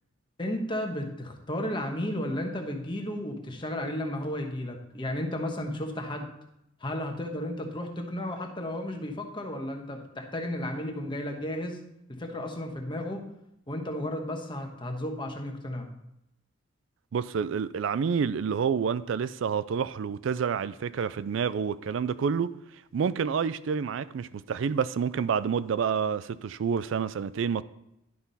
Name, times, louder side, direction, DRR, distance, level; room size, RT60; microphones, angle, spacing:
voice 1, 0.4-6.3 6.8-11.8 12.1-13.2 13.7-15.9, left 1 dB, 25° left, 1.2 m, -33 dB
voice 2, 17.1-22.5 22.9-27.6, right 6 dB, 75° right, 0.4 m, -28 dB
11.0 x 5.9 x 4.1 m
head